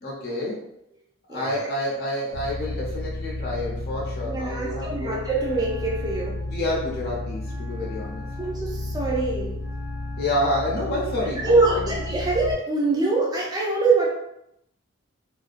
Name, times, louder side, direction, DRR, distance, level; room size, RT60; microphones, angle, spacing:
voice 1, 0.0-0.7 1.3-5.2 6.4-8.2 10.2-12.0, left 1 dB, 45° left, -4 dB, 0.5 m, -28 dB
voice 2, 1.3-1.6 4.3-6.4 8.4-9.6 11.2-14.1, right 3 dB, 20° right, -3 dB, 0.4 m, -24 dB
sound 1, 2.3-12.5, left 2 dB, 45° right, 1.2 m, -32 dB
Wind instrument woodwind instrument, 5.3-12.5, right 2 dB, 75° left, 0.8 m, -47 dB
2.4 x 2.2 x 2.4 m, 0.79 s
head